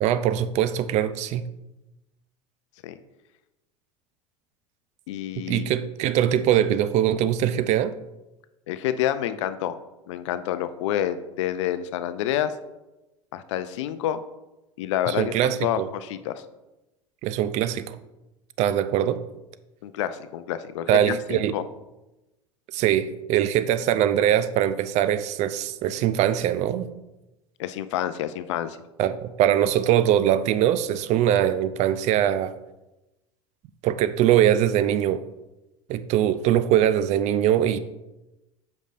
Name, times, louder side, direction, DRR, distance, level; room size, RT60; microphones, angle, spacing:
voice 1, 0.0-1.4 5.4-7.9 15.1-15.9 17.2-18.0 18.6-19.2 20.9-21.6 22.7-26.9 29.0-32.5 33.8-35.2 35.9-37.8, right 11 dB, 45° right, 13 dB, 0.4 m, -22 dB
voice 2, 5.1-5.7 8.7-9.7 10.1-12.5 13.3-14.2 14.8-16.4 19.8-21.6 27.6-28.8, left 11 dB, 65° left, 13 dB, 0.5 m, -28 dB
8.0 x 5.2 x 2.5 m, 0.99 s
figure-of-eight pair, 75°, 17 cm